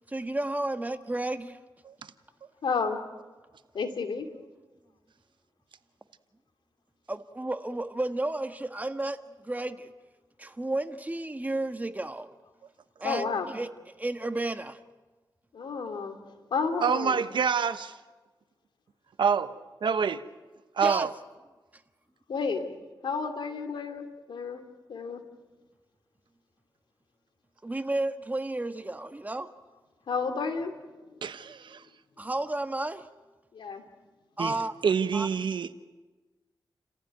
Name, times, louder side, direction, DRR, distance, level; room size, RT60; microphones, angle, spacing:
voice 1, 0.1-1.6 7.1-9.9 10.4-12.3 13.0-13.7 14.0-14.8 20.8-21.1 27.6-29.5 32.2-33.1 34.4-34.7 35.1-35.3, right 2 dB, 20° right, 1.5 m, -32 dB
voice 2, 2.6-3.0 3.7-4.3 13.0-13.5 15.5-16.2 16.5-17.2 22.3-22.7 23.0-24.6 24.9-25.2 30.1-30.7 33.5-33.8, left 5 dB, 85° left, 2.7 m, -31 dB
voice 3, 16.8-17.9 19.2-19.5 19.8-20.2 20.8-21.1 31.2-31.8 34.4-34.6 34.8-35.7, right 6 dB, 80° right, 1.0 m, -26 dB
30.0 x 15.0 x 9.4 m
cardioid pair, 75°, 8 cm